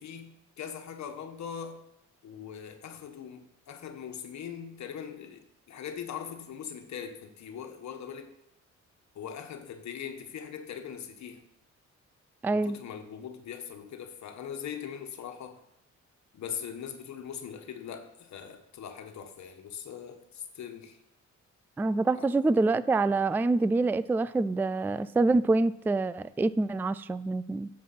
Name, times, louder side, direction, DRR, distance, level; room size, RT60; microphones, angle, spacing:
voice 1, 0.0-1.8 2.2-8.3 9.1-11.4 12.5-15.6 16.3-21.0 22.1-22.3, left 8 dB, 65° left, 5 dB, 1.5 m, -41 dB
voice 2, 12.4-12.8 21.8-27.7, right 3 dB, 5° right, 16 dB, 0.3 m, -26 dB
9.6 x 7.5 x 6.0 m, 0.82 s
cardioid pair, 90°, 30 cm